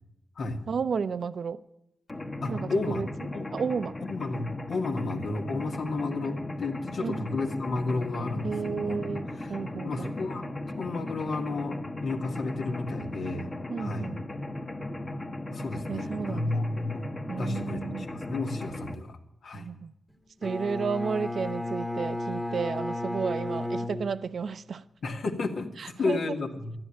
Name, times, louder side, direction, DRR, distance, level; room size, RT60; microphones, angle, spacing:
voice 1, 0.7-1.6 2.5-3.1 3.5-3.9 7.0-7.3 8.4-10.1 13.7-14.2 15.9-16.6 17.3-18.1 19.5-19.9 20.4-24.8 25.8-26.2, right 5 dB, 65° right, 0.6 m, -32 dB
Mechanisms, 2.1-18.9, left 1 dB, 30° left, 1.3 m, -37 dB
voice 2, 2.4-3.0 3.3-3.5 4.0-9.5 9.8-13.5 13.8-14.1 15.5-19.7 25.0-26.8, left 3 dB, 70° left, 1.9 m, -32 dB
Bowed string instrument, 20.4-24.6, left 1 dB, 10° left, 1.3 m, -33 dB
12.5 x 10.5 x 10.0 m
wide cardioid pair, 130°, 0 cm